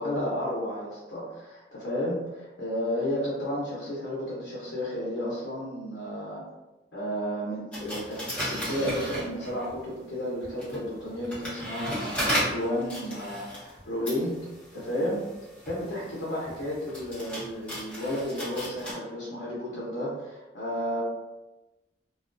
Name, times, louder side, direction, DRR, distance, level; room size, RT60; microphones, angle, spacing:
voice 1, 0.0-6.4 6.9-14.4 14.7-15.3 15.7-21.0, equal, 80° left, -7 dB, 0.6 m, -32 dB
sound 1, 7.7-9.8 10.4-18.9, equal, 5° left, 0.7 m, -35 dB
2.3 x 2.1 x 2.5 m, 1.1 s
head